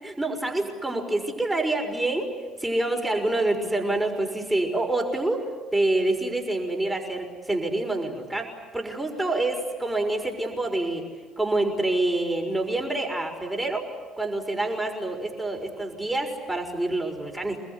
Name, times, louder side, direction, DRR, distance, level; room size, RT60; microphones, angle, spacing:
voice 1, 0.0-2.3 2.6-5.4 5.7-11.0 11.4-13.9 14.2-17.6, right 2 dB, 10° right, 3 dB, 6.1 m, -27 dB
28.0 x 21.0 x 9.9 m, 1.3 s
hypercardioid pair, 55°, 0 cm